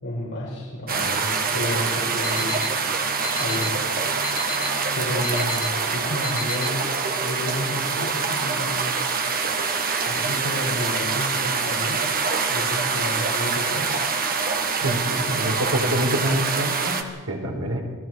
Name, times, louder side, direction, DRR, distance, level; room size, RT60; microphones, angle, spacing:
voice 1, 0.0-2.6 3.4-3.8 4.9-6.9 7.2-9.0 10.1-12.0 12.5-13.9 14.8-15.5 17.4-17.6, left 1 dB, 55° left, -7 dB, 6.0 m, -31 dB
sound 1, 0.9-17.0, right 5 dB, 40° right, 1.7 m, -25 dB
Alarm, 2.2-2.7 3.2-3.7 4.2-4.7 5.2-5.7 6.2-6.7, left 5 dB, 40° left, 1.1 m, -31 dB
voice 2, 15.3-17.8, right 1 dB, 75° right, 0 dB, 4.8 m, -26 dB
29.0 x 20.0 x 4.7 m, 1.5 s
head